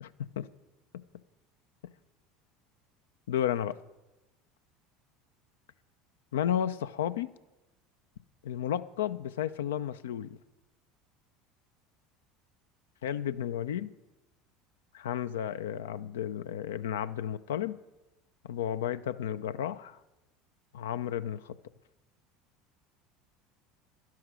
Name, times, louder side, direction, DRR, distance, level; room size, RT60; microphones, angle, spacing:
voice 1, 0.0-0.5 3.3-3.8 6.3-7.3 8.4-10.4 13.0-13.9 14.9-17.7 18.4-20.0 20.7-21.6, left 10 dB, 80° left, 13 dB, 0.5 m, -32 dB
11.5 x 10.5 x 6.1 m, 1.0 s
hypercardioid pair, 75°, 0 cm